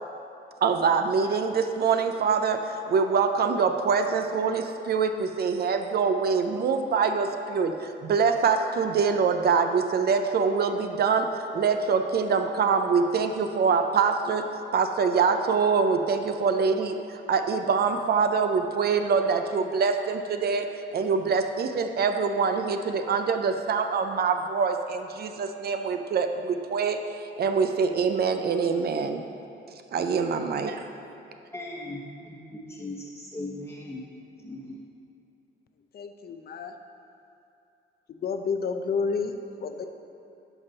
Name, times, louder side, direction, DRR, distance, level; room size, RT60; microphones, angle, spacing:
voice 1, 0.6-20.7 20.9-27.0 27.4-29.2 29.9-30.8, right 5 dB, 50° right, 6 dB, 0.6 m, -24 dB
voice 2, 31.5-34.0 34.4-34.8, left 2 dB, 10° left, -5 dB, 1.0 m, -38 dB
voice 3, 35.9-36.7 38.1-39.8, left 5 dB, 50° left, 7 dB, 0.6 m, -30 dB
10.5 x 5.3 x 4.0 m, 2.6 s
cardioid pair, 90°, 20 cm